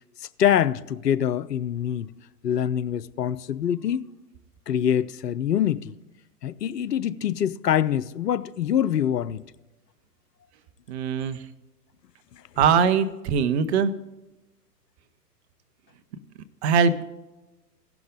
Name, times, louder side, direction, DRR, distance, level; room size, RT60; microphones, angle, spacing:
voice 1, 0.2-2.1 2.4-4.1 4.7-5.9 6.4-9.4 12.6-12.7, left 9 dB, 85° left, 0.6 m, -25 dB
voice 2, 10.9-11.4 12.6-13.9 16.6-17.0, right 6 dB, 40° right, 0.9 m, -21 dB
16.5 x 5.9 x 3.7 m
figure-of-eight pair, 115°, 48 cm